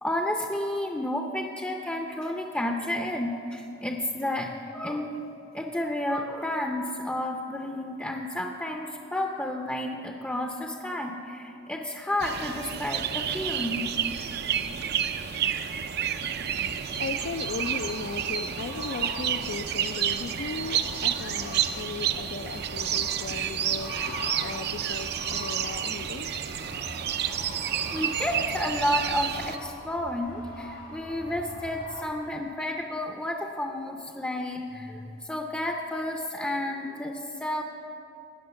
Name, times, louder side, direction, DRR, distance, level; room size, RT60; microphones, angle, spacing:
voice 1, 0.0-5.2 5.5-13.9 27.9-37.6, left 1 dB, 10° left, 2 dB, 0.6 m, -31 dB
sound 1, 12.2-29.6, right 9 dB, 55° right, 0.5 m, -30 dB
sound 2, 16.7-32.0, left 1 dB, 90° left, 2.4 m, -43 dB
voice 2, 17.0-26.3, left 4 dB, 60° left, 10 dB, 0.4 m, -37 dB
18.0 x 6.4 x 6.9 m, 2.7 s
head